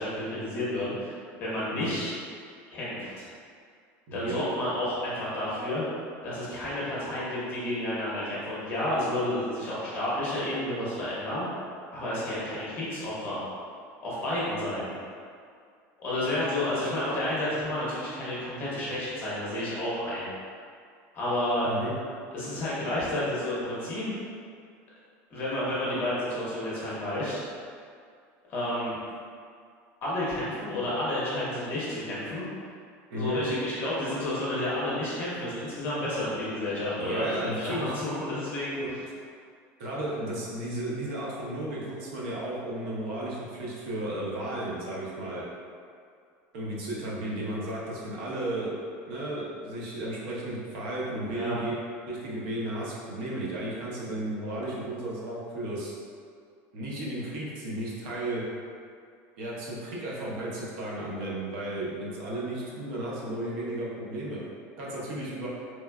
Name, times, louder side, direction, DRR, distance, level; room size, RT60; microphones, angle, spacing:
voice 1, 0.0-2.1 2.7-3.3 4.1-5.8 6.2-11.5 11.9-13.4 14.0-14.9 16.0-20.3 21.1-21.7 22.3-24.1 25.3-27.3 28.5-29.0 30.0-32.4 33.1-38.8 51.3-51.5, left 1 dB, 30° left, -9 dB, 0.9 m, -31 dB
voice 2, 4.1-4.4 21.7-21.9 33.1-33.4 36.9-37.9 38.8-39.0 39.8-45.4 46.5-48.8 49.1-51.8 52.1-55.9 56.7-58.4 59.4-64.4 64.8-65.5, right 1 dB, 70° right, -5 dB, 0.7 m, -34 dB
3.0 x 2.3 x 2.2 m, 2.2 s
cardioid pair, 165°, 6 cm